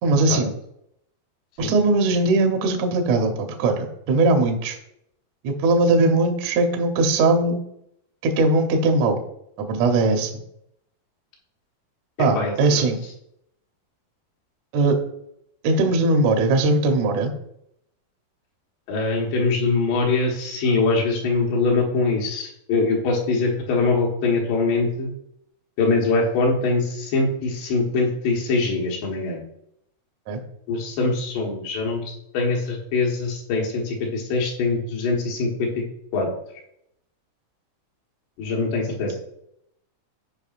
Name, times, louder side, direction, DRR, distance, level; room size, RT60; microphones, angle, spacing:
voice 1, 0.0-0.5 1.6-4.8 5.4-7.6 8.2-9.2 9.6-10.4 12.2-13.0 14.7-15.0 15.6-17.3 30.3-30.4, right 2 dB, 75° right, 4 dB, 1.6 m, -20 dB
voice 2, 12.4-12.8 18.9-25.1 25.8-29.4 30.7-32.0 32.3-35.8 36.1-36.3 38.4-39.2, left 3 dB, 85° left, -1 dB, 3.6 m, -23 dB
15.0 x 5.1 x 2.5 m, 0.76 s
omnidirectional pair, 4.7 m